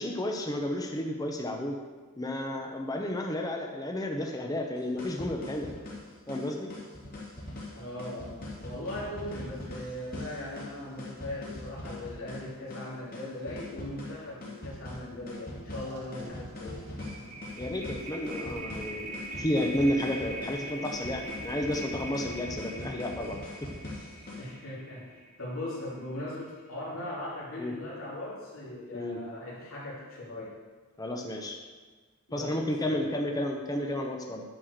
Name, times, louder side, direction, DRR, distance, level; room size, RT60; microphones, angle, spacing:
voice 1, 0.0-1.8 2.2-5.7 6.3-6.7 16.2-16.3 17.6-19.1 19.4-23.7 27.6-27.7 28.9-29.2 31.0-31.6 32.3-34.4, left 1 dB, 15° left, 2 dB, 0.7 m, -32 dB
sound 1, 4.8-24.5, left 1 dB, 40° left, 2.3 m, -42 dB
voice 2, 7.7-16.9 24.3-30.5 32.3-33.1, left 1 dB, 65° left, -6 dB, 2.9 m, -39 dB
sound 2, 15.3-15.4 15.7-26.0, right 1 dB, 75° right, 1.8 m, -42 dB
9.6 x 4.9 x 6.5 m, 1.4 s
head